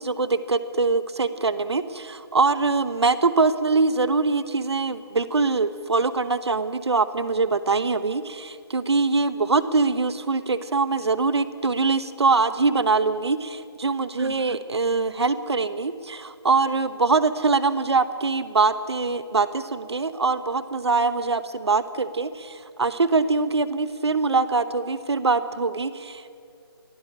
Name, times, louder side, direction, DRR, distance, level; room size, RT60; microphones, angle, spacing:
voice 1, 0.0-26.3, right 4 dB, 80° right, 13 dB, 1.1 m, -23 dB
23.0 x 16.5 x 8.7 m, 2.4 s
hypercardioid pair, 160°, 14 cm